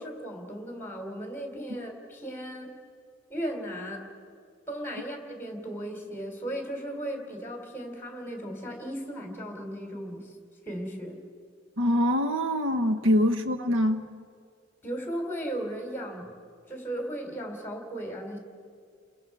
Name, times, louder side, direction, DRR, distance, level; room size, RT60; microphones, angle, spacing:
voice 1, 0.0-2.7 3.3-4.0 4.7-10.3 10.6-11.2 14.8-16.3 16.7-18.4, right 1 dB, 10° left, 2 dB, 3.1 m, -36 dB
voice 2, 11.8-14.1, equal, 70° right, 8 dB, 1.0 m, -24 dB
30.0 x 22.5 x 4.7 m, 2.1 s
head